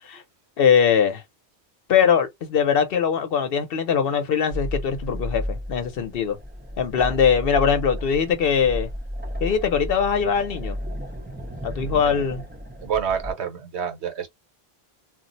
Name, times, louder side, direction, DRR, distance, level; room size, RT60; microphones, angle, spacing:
voice 1, 0.6-1.2 1.9-6.4 6.8-8.9 9.4-10.8 11.6-12.4, left 7 dB, 65° left, 0.8 m, -21 dB
sound 1, 4.5-13.3, equal, 15° right, 0.3 m, -33 dB
voice 2, 12.8-14.3, right 7 dB, 85° right, 1.1 m, -28 dB
2.4 x 2.0 x 3.8 m
omnidirectional pair, 1.1 m